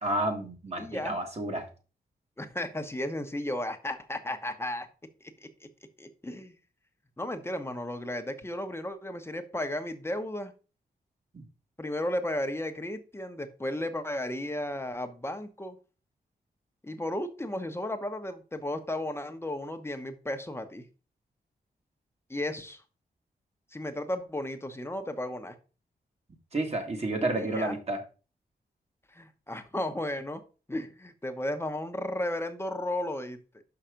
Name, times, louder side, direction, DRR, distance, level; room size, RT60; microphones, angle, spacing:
voice 1, 0.0-1.7 11.3-11.4 26.5-28.0, right 2 dB, 40° right, 2.0 m, -30 dB
voice 2, 0.8-1.2 2.4-4.9 5.2-5.7 6.0-6.5 7.2-10.5 11.8-15.8 16.8-20.9 22.3-22.8 23.7-25.6 27.4-27.8 29.1-30.4 30.7-33.6, left 1 dB, 15° left, 1.0 m, -34 dB
5.8 x 5.8 x 5.1 m
wide cardioid pair, 85°, 17 cm